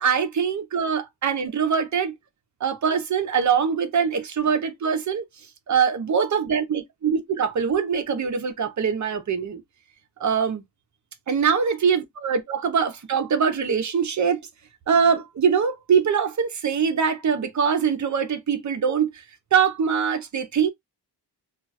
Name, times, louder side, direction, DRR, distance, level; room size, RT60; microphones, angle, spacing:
voice 1, 0.0-2.1 2.6-5.2 5.7-9.6 10.2-10.6 11.3-14.4 14.9-19.2 19.5-20.7, right 6 dB, 45° right, 0.6 m, -23 dB
2.4 x 2.2 x 4.0 m
wide cardioid pair, 180°, 41 cm